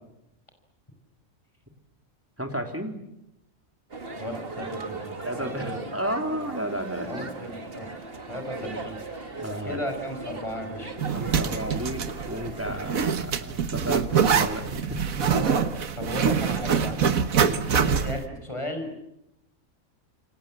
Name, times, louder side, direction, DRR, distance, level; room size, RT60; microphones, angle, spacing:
voice 1, 2.4-3.0 5.2-7.3 9.4-9.8 11.1-15.3 17.4-17.6, equal, 10° right, 4 dB, 3.5 m, -33 dB
sound 1, 3.9-13.2, right 3 dB, 45° right, 2.3 m, -38 dB
voice 2, 4.2-5.8 7.1-7.9 8.3-9.0 9.6-10.9 15.3-15.7 16.0-17.1 17.8-18.9, left 1 dB, 20° left, 5 dB, 5.6 m, -35 dB
Zipper (clothing), 11.0-18.2, right 7 dB, 80° right, 1.7 m, -25 dB
28.5 x 23.5 x 7.7 m, 0.83 s
omnidirectional pair, 1.4 m